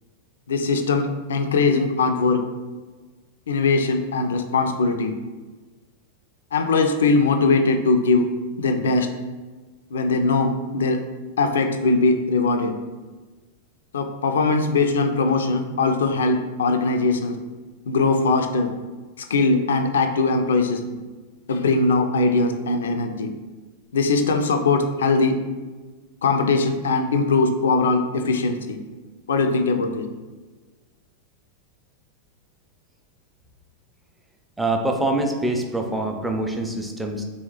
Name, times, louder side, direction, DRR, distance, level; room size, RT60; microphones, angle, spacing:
voice 1, 0.5-2.4 3.5-5.1 6.5-8.3 8.6-9.1 9.9-11.0 11.4-12.7 13.9-17.4 17.9-18.7 19.2-20.8 21.5-23.3 23.9-25.4 26.2-28.8 29.3-30.1, left 3 dB, 65° left, 7 dB, 0.3 m, -21 dB
voice 2, 34.6-37.2, right 2 dB, 5° right, 3 dB, 0.4 m, -24 dB
3.3 x 2.7 x 3.1 m, 1.3 s
figure-of-eight pair, 90°, 0 cm